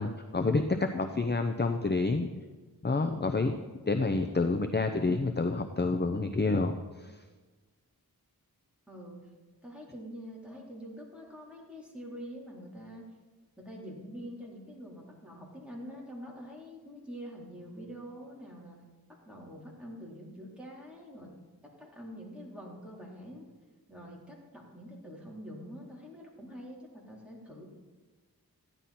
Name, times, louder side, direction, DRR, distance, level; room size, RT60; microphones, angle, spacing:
voice 1, 0.0-2.3 2.8-3.5 3.9-7.1, left 3 dB, 30° left, 6 dB, 0.7 m, -28 dB
voice 2, 8.9-9.3 9.6-13.0 13.6-18.8 19.3-21.3 21.6-23.5 23.9-27.7, equal, 5° right, -3 dB, 3.8 m, -45 dB
14.5 x 11.0 x 4.3 m, 1.3 s
wide cardioid pair, 65°, 38 cm